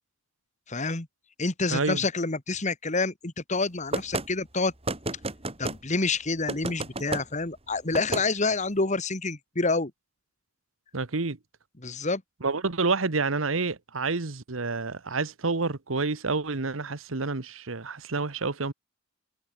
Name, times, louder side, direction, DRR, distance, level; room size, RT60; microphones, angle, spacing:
voice 1, 0.7-1.1 1.4-4.7 5.6-9.9 11.8-12.2, left 3 dB, 35° left, 1.8 m, -28 dB
voice 2, 1.7-2.0 10.9-11.4 12.4-18.7, right 3 dB, 90° right, 1.3 m, -28 dB
sound 1, 3.9-4.3 4.8-5.8 6.5-7.2 7.9-8.2, right 2 dB, 30° right, 4.2 m, -31 dB
head